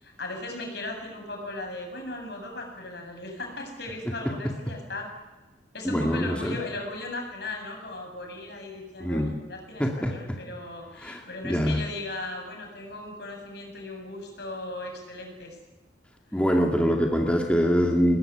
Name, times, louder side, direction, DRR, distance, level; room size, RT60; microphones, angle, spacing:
voice 1, 0.0-5.1 5.7-15.5 16.3-16.4, left 2 dB, 60° left, 2 dB, 7.8 m, -37 dB
voice 2, 5.8-6.6 9.0-9.3 9.8-10.4 11.0-11.8 16.3-18.2, equal, 5° left, 1 dB, 2.1 m, -24 dB
21.5 x 20.0 x 9.9 m, 1.1 s
head